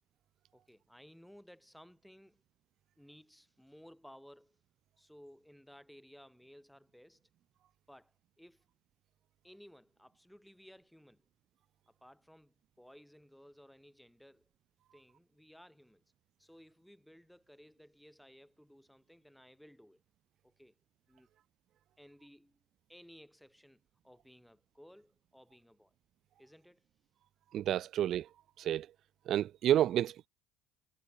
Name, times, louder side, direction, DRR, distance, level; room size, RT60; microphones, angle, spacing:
voice 1, 0.5-2.4 3.0-4.6 5.0-7.2 7.9-8.6 9.4-11.3 11.9-14.5 14.9-16.0 16.4-20.0 20.4-20.8 21.1-21.3 22.0-22.6 22.9-25.9 26.4-26.9 27.8-27.9, equal, ahead, 6.4 m, -58 dB
voice 2, 27.5-28.3 28.6-28.9 29.3-30.3, right 11 dB, 55° right, 0.5 m, -30 dB
hypercardioid pair, 70°, 0 cm